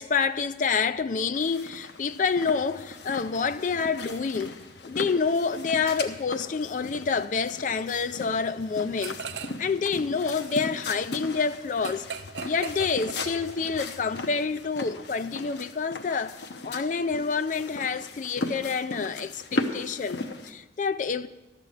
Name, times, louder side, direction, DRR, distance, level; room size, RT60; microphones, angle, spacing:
voice 1, 0.0-4.6 4.8-9.2 9.6-12.1 12.4-16.4 16.6-21.3, left 5 dB, 45° left, 0.3 m, -28 dB
sound 1, 1.3-20.5, left 2 dB, 65° left, 0.9 m, -37 dB
sound 2, 9.0-9.7 10.0-13.8, right 6 dB, 70° right, 0.6 m, -40 dB
12.0 x 6.7 x 7.9 m
head